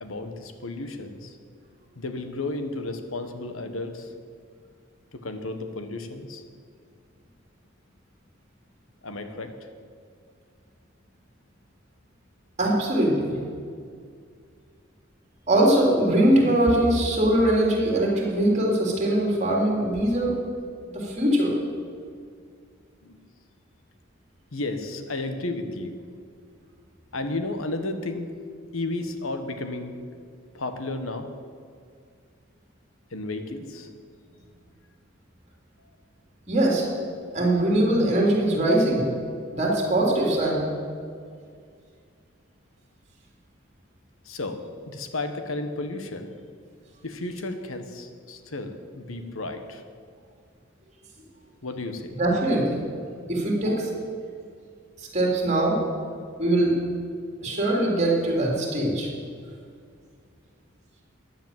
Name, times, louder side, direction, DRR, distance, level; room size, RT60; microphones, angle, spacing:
voice 1, 0.0-1.3 2.0-4.1 5.1-6.4 9.0-9.5 23.0-23.2 24.5-26.0 27.1-28.3 28.7-30.0 30.5-31.3 33.1-33.9 44.2-46.3 47.0-49.8 51.6-52.1, left 2 dB, 85° left, 8 dB, 1.4 m, -33 dB
voice 2, 12.6-13.4 15.5-20.3 20.9-21.5 36.5-36.8 37.3-39.1 39.5-40.7 52.2-52.8 53.3-53.9 55.0-55.8 56.4-56.7 57.4-59.1, right 1 dB, 35° right, -1 dB, 3.6 m, -22 dB
15.0 x 10.5 x 7.6 m, 2.2 s
head